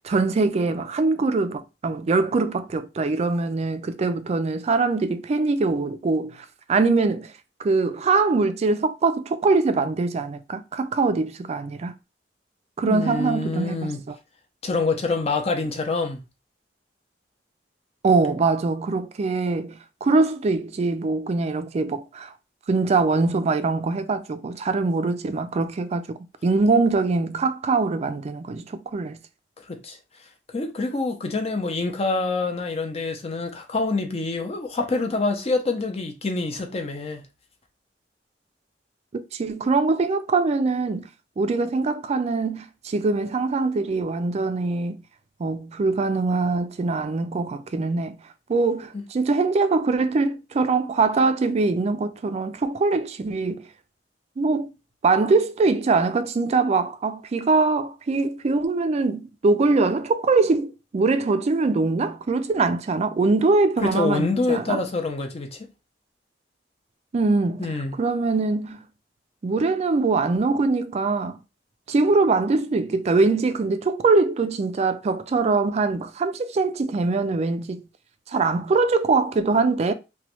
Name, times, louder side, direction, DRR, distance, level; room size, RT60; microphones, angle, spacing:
voice 1, 0.0-7.3 7.6-11.9 12.8-14.1 18.0-22.3 22.7-26.0 26.4-29.2 39.1-41.1 41.4-45.0 45.4-48.2 48.5-53.6 54.4-54.7 55.0-64.8 67.1-67.7 68.0-68.8 69.4-71.4 71.9-77.8 78.3-79.9, right 3 dB, 35° right, 0.3 m, -23 dB
voice 2, 12.8-14.0 14.6-16.3 29.7-30.0 30.5-37.3 48.9-49.0 63.8-65.7 67.6-68.0, left 3 dB, 35° left, 0.6 m, -26 dB
3.0 x 2.2 x 2.9 m
head